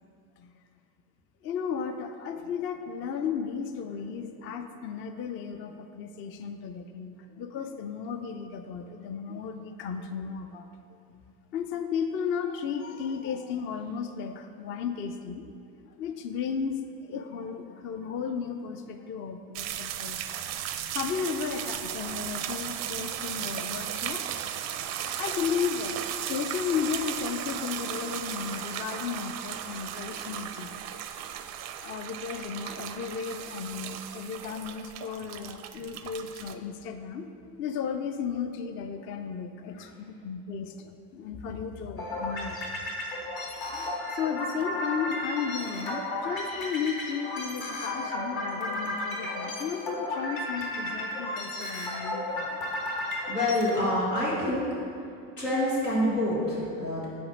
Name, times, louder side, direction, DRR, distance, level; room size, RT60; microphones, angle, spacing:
voice 1, 1.4-10.7 11.1-11.2 11.5-15.5 15.8-20.2 20.9-30.8 31.8-42.6 43.5-52.7, left 6 dB, 30° left, 7 dB, 0.4 m, -34 dB
sound 1, 19.5-36.5, right 10 dB, 40° right, 0.4 m, -36 dB
sound 2, 42.0-53.8, left 1 dB, 50° left, 1.5 m, -34 dB
voice 2, 53.0-54.7 55.4-57.1, left 1 dB, 90° left, -6 dB, 1.5 m, -27 dB
5.9 x 4.3 x 5.1 m, 2.5 s
figure-of-eight pair, 60°, 46 cm